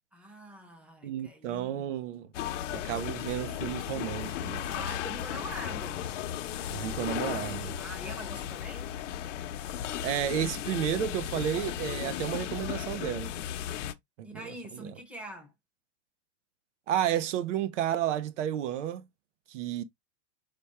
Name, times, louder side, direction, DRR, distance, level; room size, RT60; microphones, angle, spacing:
voice 1, 0.1-1.9 2.4-2.8 4.6-6.1 7.7-8.9 14.2-15.5, right 1 dB, 5° right, 0.9 m, -44 dB
voice 2, 1.0-2.3 2.7-4.6 6.7-7.8 10.0-13.3 14.2-14.4 14.7-14.8 16.9-19.1 19.5-19.8, right 10 dB, 70° right, 0.8 m, -32 dB
sound 1, 2.3-13.9, left 11 dB, 70° left, 0.8 m, -35 dB
5.1 x 2.3 x 4.2 m
supercardioid pair, 165°, 38 cm